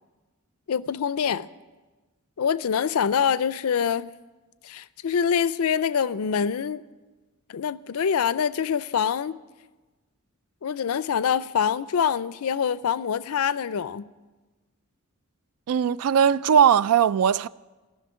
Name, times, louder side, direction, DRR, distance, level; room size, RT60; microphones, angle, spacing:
voice 1, 0.7-1.5 2.4-4.1 4.6-6.8 7.5-9.4 10.6-14.1, left 7 dB, 85° left, 0.4 m, -25 dB
voice 2, 15.7-17.5, right 8 dB, 85° right, 0.3 m, -19 dB
14.5 x 6.4 x 9.4 m
head